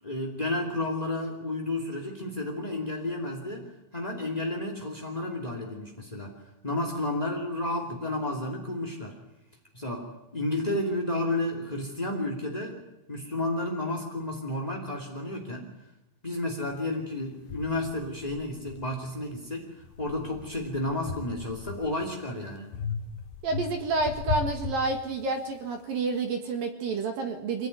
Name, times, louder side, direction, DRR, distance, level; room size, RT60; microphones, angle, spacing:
voice 1, 0.0-6.4 6.6-9.1 9.7-12.8 13.1-15.7 16.2-22.7, left 1 dB, 25° left, 2 dB, 0.8 m, -32 dB
sound 1, 16.7-16.8 17.5-19.3 19.8-22.1 22.7-25.5, left 5 dB, 65° left, 2.8 m, -37 dB
voice 2, 23.4-27.7, right 3 dB, 55° right, 5 dB, 3.0 m, -29 dB
25.0 x 17.5 x 9.7 m, 0.92 s
omnidirectional pair, 5.8 m